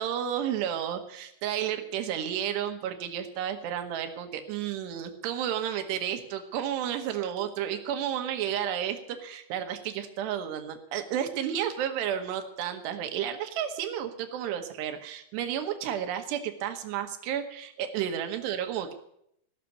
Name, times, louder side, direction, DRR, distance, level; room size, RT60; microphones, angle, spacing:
voice 1, 0.0-18.9, right 10 dB, 70° right, 6 dB, 3.1 m, -32 dB
16.0 x 6.7 x 9.6 m, 0.74 s
omnidirectional pair, 5.5 m